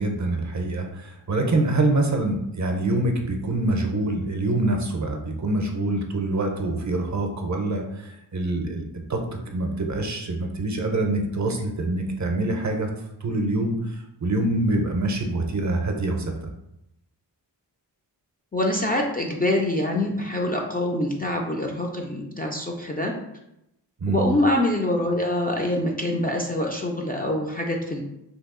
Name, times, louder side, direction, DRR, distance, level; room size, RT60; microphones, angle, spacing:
voice 1, 0.0-9.2 9.5-12.9 13.2-16.5 24.0-24.2, right 2 dB, 40° right, 3 dB, 0.5 m, -25 dB
voice 2, 18.5-23.1 24.1-28.1, left 1 dB, 20° left, 0 dB, 0.3 m, -25 dB
2.8 x 2.3 x 3.6 m, 0.84 s
wide cardioid pair, 65°, 44 cm